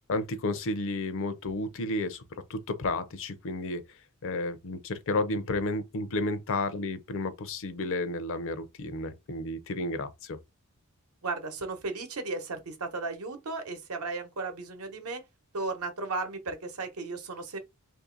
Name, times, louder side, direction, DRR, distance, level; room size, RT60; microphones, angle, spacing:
voice 1, 0.1-2.2 2.5-3.8 4.2-10.4, left 2 dB, 65° left, 0.5 m, -32 dB
voice 2, 11.2-15.2 15.5-17.6, right 3 dB, 85° right, 0.9 m, -35 dB
2.9 x 2.7 x 3.8 m
head